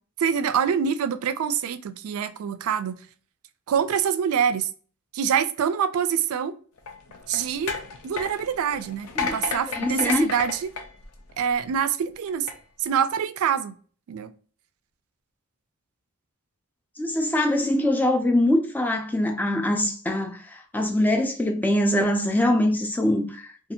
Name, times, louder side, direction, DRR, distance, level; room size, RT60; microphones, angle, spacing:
voice 1, 0.2-3.0 3.7-4.7 5.1-6.5 7.3-7.8 8.0-10.7 11.4-12.5 12.8-13.7 14.1-14.3, right 7 dB, 70° right, 0.3 m, -25 dB
sound 1, 6.8-11.7 12.3-12.5, left 5 dB, 75° left, 0.5 m, -33 dB
voice 2, 9.7-10.3 17.0-23.7, left 1 dB, 10° left, 0.3 m, -23 dB
2.6 x 2.4 x 2.6 m
head